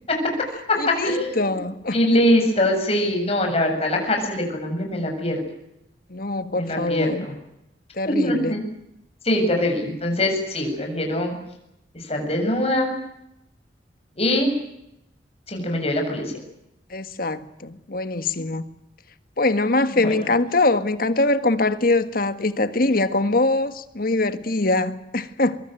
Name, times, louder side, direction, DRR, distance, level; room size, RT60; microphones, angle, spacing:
voice 1, 0.1-1.6 1.9-5.4 6.6-7.3 8.1-8.6 9.2-11.3 12.1-12.9 14.2-14.5 15.5-16.3 19.9-20.2, left 1 dB, 35° left, 7.6 m, -23 dB
voice 2, 0.7-1.9 6.1-7.3 8.0-8.6 16.9-18.6 19.4-25.6, left 2 dB, 50° left, 1.7 m, -23 dB
24.5 x 23.0 x 9.3 m
head